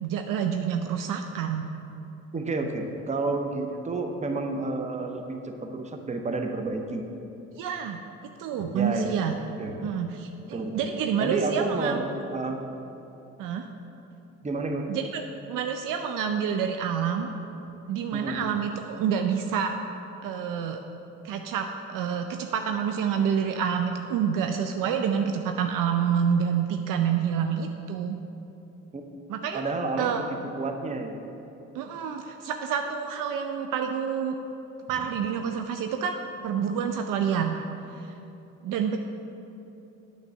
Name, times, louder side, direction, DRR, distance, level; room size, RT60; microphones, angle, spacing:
voice 1, 0.0-1.7 7.5-8.0 8.4-9.3 9.8-12.0 13.4-13.7 14.9-15.2 15.5-17.3 17.9-19.7 20.2-20.8 21.2-28.2 29.3-29.6 30.0-30.2 31.7-34.4 34.9-37.6 38.0-38.1 38.6-39.0, right 7 dB, 55° right, 5 dB, 0.5 m, -28 dB
voice 2, 2.3-7.0 8.6-9.2 9.6-9.9 10.5-10.9 11.2-12.0 12.3-12.6 14.4-14.9 18.1-18.4 28.9-29.0 29.5-30.3 30.6-31.1 34.9-35.0, right 3 dB, 20° right, 4 dB, 0.7 m, -30 dB
9.0 x 3.3 x 5.7 m, 2.9 s
hypercardioid pair, 50°, 40 cm